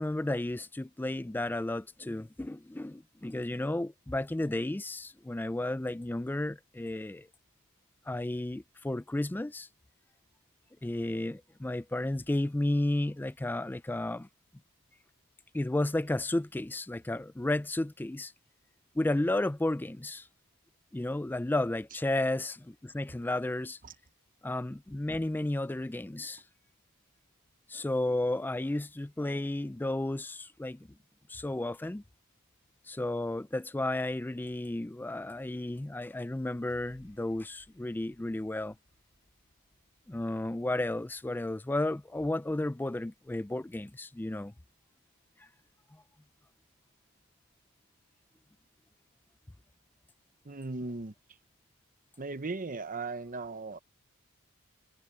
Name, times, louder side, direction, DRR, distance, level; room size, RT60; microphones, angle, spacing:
voice 1, 0.0-7.3 8.1-9.7 10.8-14.3 15.5-18.3 18.9-20.3 20.9-23.8 24.4-26.4 27.7-30.9 31.3-32.0 32.9-38.7 40.1-44.5, left 1 dB, 10° left, 0.3 m, -33 dB
sound 1, 36.7-43.1, left 1 dB, 65° left, 5.9 m, -67 dB
voice 2, 50.4-51.1 52.2-53.8, right 3 dB, 40° right, 0.9 m, -37 dB
head